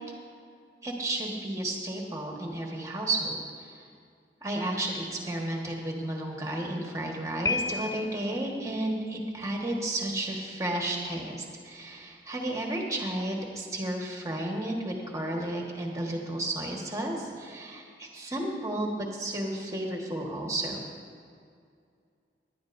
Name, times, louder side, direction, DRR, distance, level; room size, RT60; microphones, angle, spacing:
voice 1, 0.8-3.8 4.4-20.8, right 1 dB, 20° right, 0 dB, 1.4 m, -32 dB
Piano, 7.4-8.4, left 3 dB, 20° left, 0.3 m, -31 dB
18.0 x 11.0 x 2.6 m, 2.3 s
head